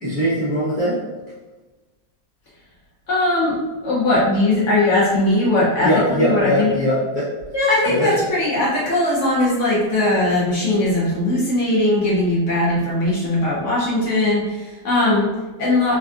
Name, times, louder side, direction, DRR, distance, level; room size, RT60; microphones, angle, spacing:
voice 1, 0.0-1.0 5.8-7.3 7.9-8.1, equal, 10° right, -11 dB, 0.3 m, -20 dB
voice 2, 3.1-3.6 3.8-6.7 7.5-16.0, left 1 dB, 60° left, -7 dB, 0.8 m, -19 dB
3.3 x 2.5 x 2.4 m, 1.2 s
omnidirectional pair, 2.0 m